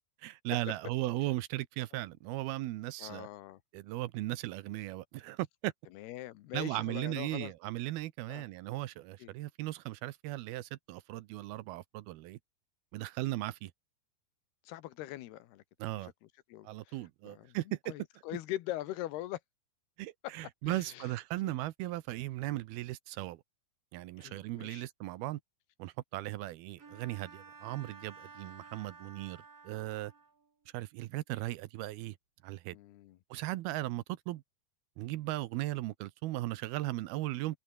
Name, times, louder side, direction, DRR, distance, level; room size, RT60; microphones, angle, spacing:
voice 1, 0.2-3.3 3.7-5.7 6.5-12.4 12.9-13.7 15.8-16.1 16.6-17.9 20.0-23.4 23.9-25.4 25.8-30.1 30.7-32.2 32.4-32.8 33.3-34.4 35.0-37.6, right 17 dB, 80° right, 2.7 m, -37 dB
voice 2, 3.0-3.6 5.9-7.5 8.3-8.5 9.2-9.3 14.7-15.6 16.5-16.9 17.2-17.6 17.9-19.4 20.2-20.3 20.7-21.1 21.4-21.6 24.2-24.8 32.7-33.2, left 15 dB, 80° left, 3.1 m, -42 dB
Bowed string instrument, 26.8-30.5, right 5 dB, 40° right, 4.9 m, -53 dB
omnidirectional pair, 4.6 m